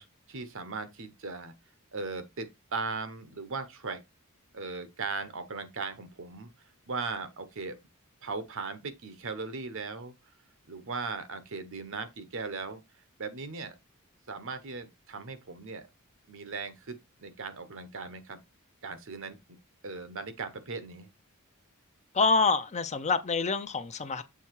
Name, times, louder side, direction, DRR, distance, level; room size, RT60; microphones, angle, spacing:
voice 1, 0.0-1.5 1.9-4.0 4.5-6.5 6.9-7.8 8.2-10.1 10.7-12.8 13.2-13.7 14.3-15.9 16.3-18.4 18.8-19.4 19.8-21.1, right 4 dB, 65° right, 1.0 m, -38 dB
voice 2, 22.1-24.2, left 4 dB, 30° left, 0.7 m, -26 dB
7.1 x 3.5 x 4.6 m
head